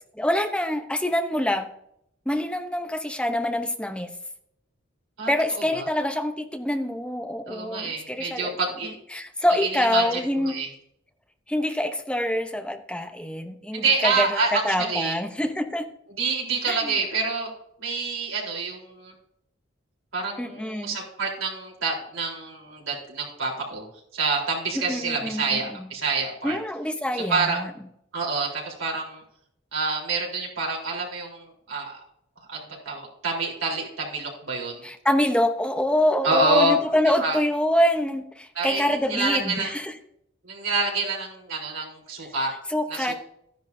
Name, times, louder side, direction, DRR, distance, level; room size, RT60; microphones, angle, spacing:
voice 1, 0.2-1.7 2.3-4.1 5.3-8.6 9.1-10.6 11.5-15.9 16.7-17.0 20.4-21.0 24.7-25.9 26.4-27.7 34.8-39.9 42.7-43.1, left 1 dB, 5° left, 6 dB, 0.7 m, -25 dB
voice 2, 7.5-9.0 9.5-10.7 13.7-15.1 16.2-17.5 17.8-19.1 20.1-23.8 24.1-26.6 27.3-27.6 28.1-29.2 29.7-32.0 32.5-32.6 32.9-34.8 36.2-36.7 37.2-37.4 38.6-38.8 39.1-39.7 40.4-42.5 42.9-43.1, right 3 dB, 85° right, -2 dB, 3.8 m, -27 dB
14.5 x 10.5 x 2.7 m, 0.73 s
head